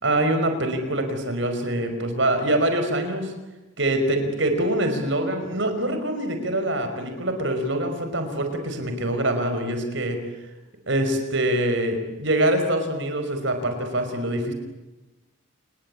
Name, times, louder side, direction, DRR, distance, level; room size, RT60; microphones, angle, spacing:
voice 1, 0.0-3.3 3.8-10.2 10.9-14.5, right 1 dB, 65° right, 7 dB, 5.4 m, -24 dB
28.5 x 21.0 x 8.7 m, 1.1 s
head